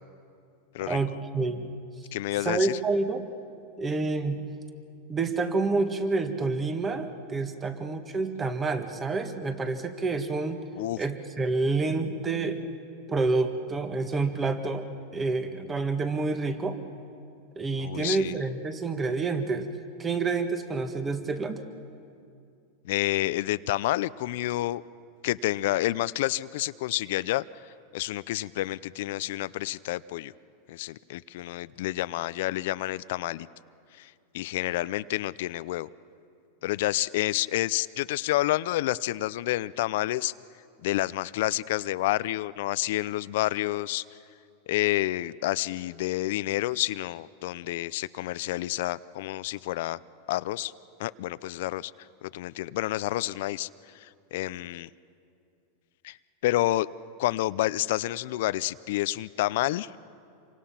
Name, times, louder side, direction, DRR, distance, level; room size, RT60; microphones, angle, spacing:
voice 1, 0.9-1.7 2.4-3.3 3.8-4.4 5.1-10.6 11.0-12.6 13.1-16.8 17.5-19.7 20.0-21.6, right 3 dB, 20° right, 8 dB, 1.7 m, -28 dB
voice 2, 2.1-2.8 10.8-11.0 17.8-18.4 22.8-24.8 25.2-27.5 27.9-30.3 30.7-33.5 33.9-35.9 36.6-40.3 40.8-44.0 44.7-50.0 50.3-50.7 51.0-51.9 52.2-53.7 53.9-54.9 56.0-56.2 56.4-56.9 57.2-59.9, left 16 dB, 70° left, 17 dB, 0.5 m, -29 dB
27.5 x 24.5 x 5.8 m, 2.5 s
supercardioid pair, 125°, 0 cm